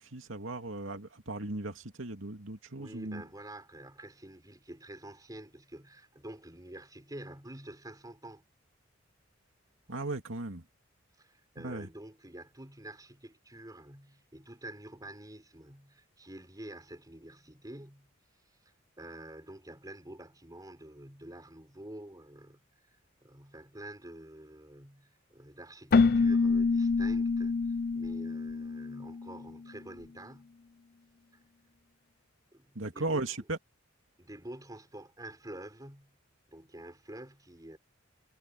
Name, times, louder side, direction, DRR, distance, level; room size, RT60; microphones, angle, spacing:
voice 1, 0.0-3.2 9.9-10.6 11.6-11.9 32.7-33.6, right 2 dB, 70° right, 2.6 m, -37 dB
voice 2, 2.8-8.4 11.2-18.1 19.0-23.0 23.2-30.5 31.3-31.4 32.5-33.4 34.2-36.2 36.5-37.8, right 1 dB, 20° right, 4.4 m, -48 dB
Keyboard (musical), 25.9-29.5, left 4 dB, 50° left, 0.5 m, -27 dB
head